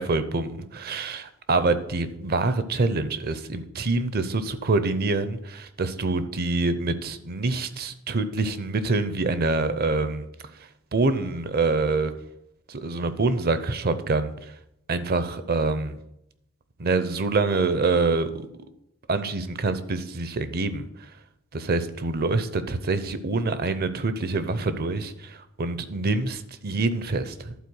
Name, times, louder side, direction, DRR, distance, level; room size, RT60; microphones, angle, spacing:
voice 1, 0.0-10.3 10.9-12.1 12.7-14.3 14.9-16.0 16.8-18.5 19.1-20.9 21.5-27.5, right 3 dB, 50° right, 12 dB, 0.7 m, -26 dB
11.5 x 4.3 x 6.2 m, 0.80 s
head